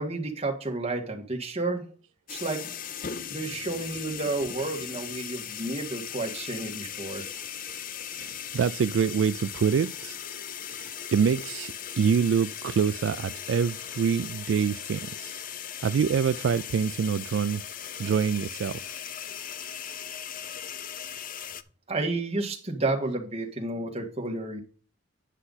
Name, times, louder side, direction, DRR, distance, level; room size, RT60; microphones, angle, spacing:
voice 1, 0.0-1.9 2.3-2.7 3.3-7.3 21.9-24.6, right 2 dB, 30° right, 1.9 m, -31 dB
sound 1, 2.3-21.6, left 9 dB, 45° left, 0.5 m, -38 dB
voice 2, 8.2-10.2 10.7-15.4 15.8-17.6 18.0-19.0, right 7 dB, 70° right, 0.3 m, -26 dB
9.9 x 5.7 x 4.1 m
head